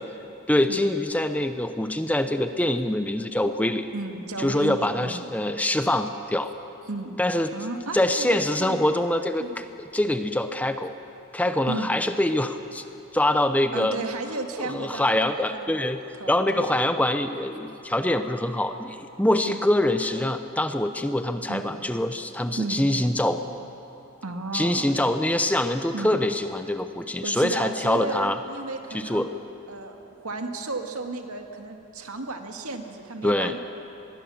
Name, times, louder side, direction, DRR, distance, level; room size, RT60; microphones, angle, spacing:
voice 1, 0.5-3.9 4.4-6.5 7.2-7.5 7.9-10.9 11.3-12.8 13.1-14.0 14.6-16.0 16.3-23.5 24.5-28.4 28.9-29.3 33.2-33.5, left 1 dB, 5° left, 8 dB, 0.6 m, -24 dB
voice 2, 3.9-5.3 6.9-7.2 7.5-8.8 9.4-9.6 11.7-11.9 13.7-16.7 19.4-19.6 21.5-21.8 22.5-22.8 24.2-25.0 25.9-26.2 27.2-29.3 29.7-33.6, right 2 dB, 80° right, 4 dB, 2.0 m, -34 dB
25.5 x 21.5 x 7.1 m, 2.9 s
head